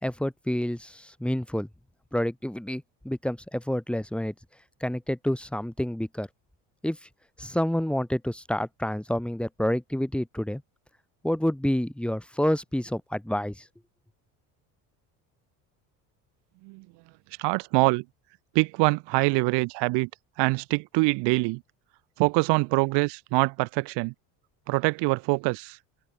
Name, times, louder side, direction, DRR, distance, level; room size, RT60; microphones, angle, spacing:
voice 1, 0.0-1.7 2.1-4.3 4.8-6.3 6.8-7.0 7.4-10.6 11.2-13.6, left 1 dB, 5° left, 1.5 m, -28 dB
voice 2, 17.4-18.0 18.5-20.1 20.4-21.6 22.2-24.1 24.7-25.8, right 26 dB, 75° right, 1.3 m, -24 dB
open air
supercardioid pair, 90°, 42 cm